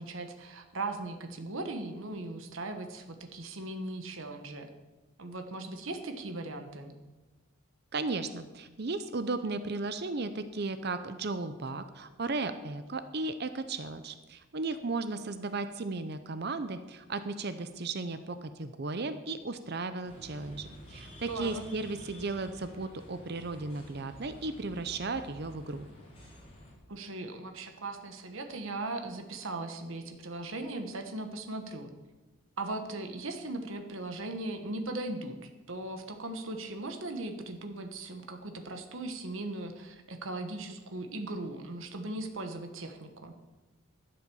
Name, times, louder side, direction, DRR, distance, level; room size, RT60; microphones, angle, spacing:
voice 1, 0.0-4.7 5.2-6.9 21.3-21.7 26.9-31.9 32.6-43.3, right 2 dB, 65° right, 5 dB, 1.3 m, -38 dB
voice 2, 7.9-25.9, right 3 dB, 50° right, 11 dB, 0.6 m, -35 dB
sound 1, 20.0-26.7, equal, 25° left, 4.1 m, -50 dB
12.0 x 7.7 x 7.0 m, 1.1 s
head